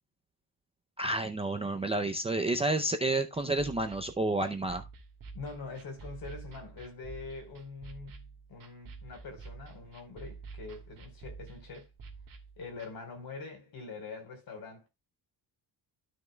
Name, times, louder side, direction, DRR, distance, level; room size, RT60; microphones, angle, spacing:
voice 1, 1.0-4.8, right 2 dB, 15° right, 0.5 m, -30 dB
sound 1, 3.3-12.9, right 4 dB, 45° right, 2.5 m, -48 dB
voice 2, 5.3-11.9 12.6-14.9, left 4 dB, 50° left, 4.3 m, -44 dB
12.5 x 6.4 x 2.3 m
cardioid pair, 180°, 45 cm